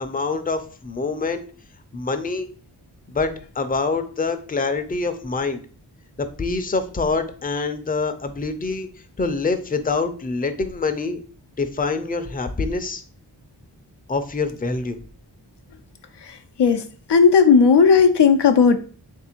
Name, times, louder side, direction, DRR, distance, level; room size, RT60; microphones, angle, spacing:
voice 1, 0.0-1.4 1.9-2.5 3.1-5.6 6.2-8.9 9.2-11.2 11.6-13.0 14.1-15.0, left 3 dB, 20° left, 8 dB, 0.5 m, -25 dB
voice 2, 17.1-18.8, left 6 dB, 75° left, 8 dB, 0.5 m, -14 dB
3.4 x 2.6 x 4.3 m, 0.41 s
wide cardioid pair, 45°, 42 cm